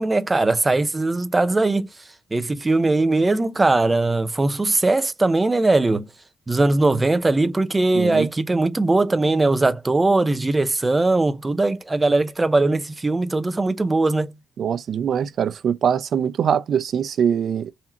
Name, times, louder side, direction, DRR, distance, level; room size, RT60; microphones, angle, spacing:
voice 1, 0.0-1.9 2.3-6.1 6.5-14.3, right 2 dB, 20° right, 0.6 m, -20 dB
voice 2, 7.9-8.3 14.6-17.7, right 8 dB, 60° right, 0.4 m, -22 dB
3.7 x 2.8 x 4.3 m
cardioid pair, 90°, 0 cm